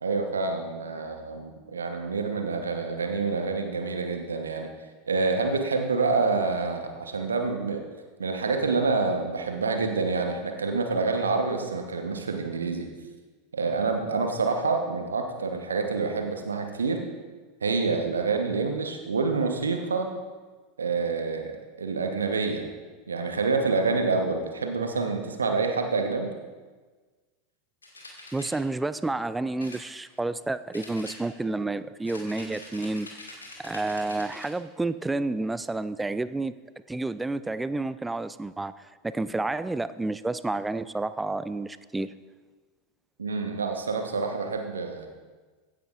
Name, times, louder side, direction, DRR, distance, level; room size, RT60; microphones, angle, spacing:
voice 1, 0.0-4.7 5.1-7.8 8.2-12.9 13.5-17.0 17.6-20.1 20.8-21.5 21.8-22.7 23.1-26.3 43.2-45.1, right 4 dB, 80° right, 4 dB, 1.1 m, -27 dB
sound 1, 27.8-28.6 29.6-30.4 30.7-31.6 32.0-34.6, left 2 dB, 85° left, 2.0 m, -45 dB
voice 2, 28.3-33.1 33.6-36.5 36.9-42.1, right 2 dB, 10° right, 15 dB, 0.4 m, -30 dB
15.5 x 10.0 x 2.5 m, 1.4 s
figure-of-eight pair, 85°, 0 cm